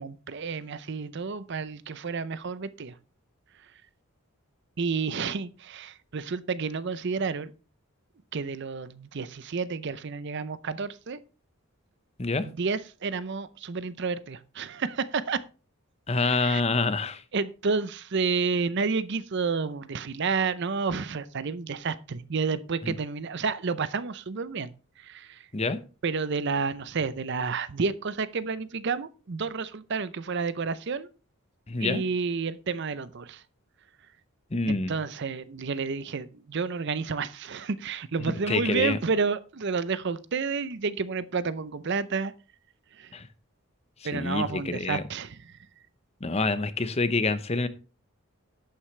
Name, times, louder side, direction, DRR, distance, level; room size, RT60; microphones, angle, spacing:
voice 1, 0.0-3.0 4.8-7.5 8.3-11.2 12.4-15.4 16.2-16.6 17.3-24.7 25.0-25.5 26.0-31.1 31.8-33.4 34.7-42.3 42.9-43.1 44.0-45.6, right 4 dB, 55° right, 0.6 m, -30 dB
voice 2, 16.1-17.2 22.8-22.9 25.5-25.8 31.7-32.0 34.5-34.9 38.2-39.0 43.1-43.3 44.0-45.0 46.2-47.7, left 3 dB, 30° left, 0.8 m, -27 dB
11.5 x 8.8 x 3.2 m
head